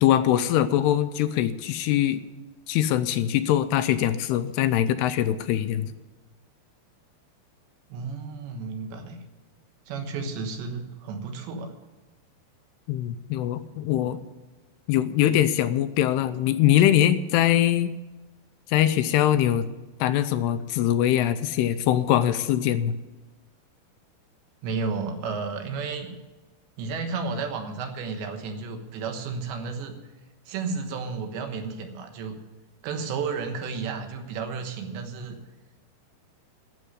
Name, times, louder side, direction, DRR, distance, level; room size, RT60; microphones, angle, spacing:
voice 1, 0.0-2.2 2.7-5.9 12.9-14.2 14.9-17.9 18.7-19.7 20.0-22.9, left 11 dB, 80° left, 11 dB, 2.5 m, -22 dB
voice 2, 7.9-9.2 9.9-11.7 24.6-26.2 26.8-30.0 30.5-32.4 32.8-35.4, right 4 dB, 85° right, 6 dB, 3.6 m, -32 dB
12.5 x 8.3 x 9.8 m, 1.2 s
omnidirectional pair, 4.9 m